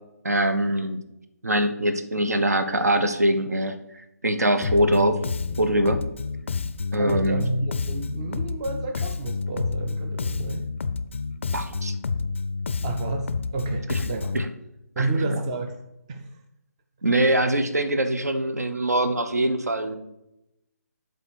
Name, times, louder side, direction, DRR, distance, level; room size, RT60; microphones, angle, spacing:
voice 1, 0.2-1.0 1.4-3.7 4.2-5.2 5.6-6.1 6.9-7.4 11.5-11.9 13.9-14.0 14.3-14.5 15.0-15.3 17.0-20.0, right 1 dB, 70° right, 9 dB, 0.9 m, -23 dB
Bass guitar, 4.6-14.5, left 4 dB, 45° left, 0.4 m, -29 dB
voice 2, 6.9-10.7 12.8-14.3 15.0-15.8 16.1-16.3, right 2 dB, 20° right, 5 dB, 0.5 m, -30 dB
8.0 x 3.5 x 6.2 m, 0.87 s
figure-of-eight pair, 145°, 9 cm